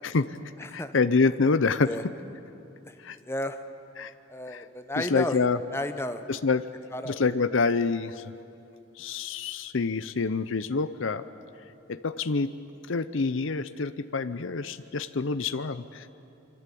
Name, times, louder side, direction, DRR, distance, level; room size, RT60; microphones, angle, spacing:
voice 1, 0.0-0.4 0.7-2.0 3.0-3.2 4.0-4.1 4.5-4.7 5.0-5.6 6.3-6.7 7.0-8.3 9.0-11.2 11.9-12.5 12.9-16.1, left 4 dB, 70° left, 12 dB, 0.6 m, -27 dB
voice 2, 0.6-0.9 1.8-2.0 2.9-3.0 3.3-3.6 4.3-5.5 5.7-6.2 6.9-7.2, left 1 dB, 10° left, 8 dB, 1.0 m, -32 dB
26.5 x 23.5 x 8.5 m, 2.7 s
head